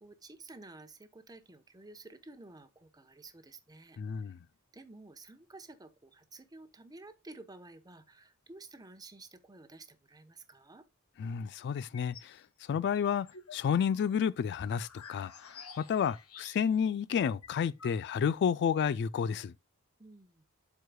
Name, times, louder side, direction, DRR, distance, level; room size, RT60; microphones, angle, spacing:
voice 1, 0.0-4.3 4.7-10.9 20.0-20.4, right 2 dB, 15° right, 0.8 m, -52 dB
voice 2, 4.0-4.4 11.2-12.4 12.7-13.3 13.5-19.5, left 7 dB, 50° left, 0.3 m, -31 dB
sound 1, 11.8-12.3 12.7-16.9 17.2-17.3 17.4-18.4, left 5 dB, 70° left, 1.1 m, -51 dB
12.5 x 4.7 x 2.2 m
head